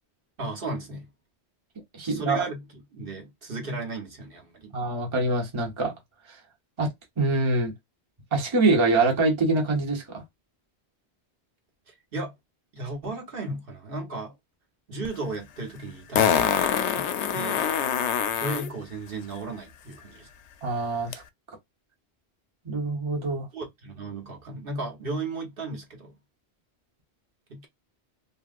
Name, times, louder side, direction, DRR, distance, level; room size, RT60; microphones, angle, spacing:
voice 1, 0.4-1.1 2.0-4.8 11.9-12.4 12.7-14.3 14.9-16.5 16.9-17.6 18.3-20.3 23.5-26.2 27.5-27.7, right 2 dB, 60° right, 1.2 m, -35 dB
voice 2, 1.9-2.4 4.7-5.9 6.8-6.9 7.2-7.7 8.3-10.2 20.6-21.2 22.6-23.5, right 2 dB, 30° right, 0.9 m, -24 dB
Fart, 15.0-15.1 16.1-18.7 21.1-21.2, left 8 dB, 90° left, 0.9 m, -24 dB
2.9 x 2.7 x 2.4 m
omnidirectional pair, 1.1 m